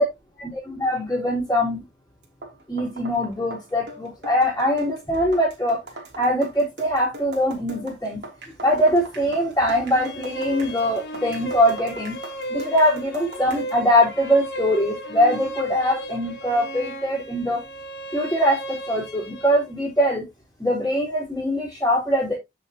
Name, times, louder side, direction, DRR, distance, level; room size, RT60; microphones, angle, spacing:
voice 1, 0.4-1.8 2.7-5.8 6.2-8.2 8.6-12.2 12.5-17.6 18.1-20.2 20.6-22.4, equal, 15° left, -7 dB, 4.0 m, -22 dB
sound 1, 2.2-13.8, right 1 dB, 65° right, 3.3 m, -40 dB
sound 2, 9.7-19.7, right 1 dB, 60° left, 1.7 m, -35 dB
10.0 x 6.7 x 3.0 m, 0.21 s
head